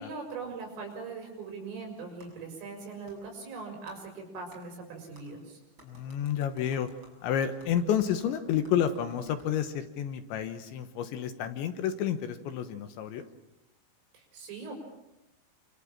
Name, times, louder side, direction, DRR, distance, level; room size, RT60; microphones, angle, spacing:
voice 1, 0.0-5.6 14.1-14.7, right 4 dB, 70° right, 4 dB, 8.9 m, -41 dB
Clapping, 2.2-2.3 3.1-3.2 3.9-4.0 4.5-4.6 5.1-5.3 5.8-9.5, right 1 dB, 20° right, 7.5 m, -57 dB
voice 2, 5.8-6.9 7.2-13.3, left 9 dB, 70° left, 9 dB, 3.2 m, -30 dB
28.5 x 26.5 x 7.5 m, 0.91 s
omnidirectional pair, 5.9 m